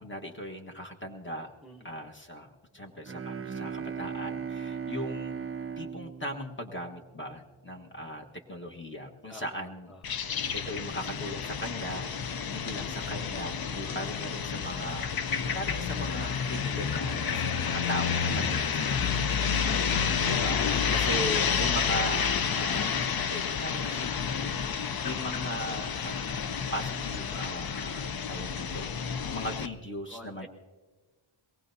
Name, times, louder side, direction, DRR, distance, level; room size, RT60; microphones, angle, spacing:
voice 1, 0.0-1.5 1.8-2.5 2.7-5.3 5.8-9.9 10.5-12.1 12.5-15.1 15.4-19.3 20.3-20.6 20.9-26.4 26.7-28.9 29.3-30.5, equal, 25° left, 1 dB, 1.3 m, -38 dB
voice 2, 1.6-2.1 9.3-10.3 19.0-19.8 20.8-21.1 30.1-30.5, equal, ahead, 1 dB, 1.0 m, -50 dB
Bowed string instrument, 3.0-7.3, right 6 dB, 30° right, 0.4 m, -37 dB
sound 1, 10.0-29.7, left 6 dB, 50° left, 0.6 m, -30 dB
23.0 x 19.0 x 2.7 m, 1.4 s
wide cardioid pair, 130°, 49 cm